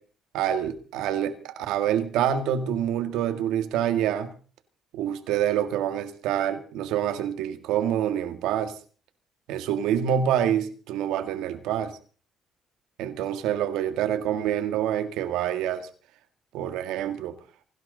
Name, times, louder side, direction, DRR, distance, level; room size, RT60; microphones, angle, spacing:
voice 1, 0.3-4.3 4.9-8.8 9.5-11.9 13.0-15.9 16.5-17.4, right 10 dB, 90° right, 1.8 m, -26 dB
28.0 x 12.0 x 3.9 m
cardioid pair, 75°, 0 cm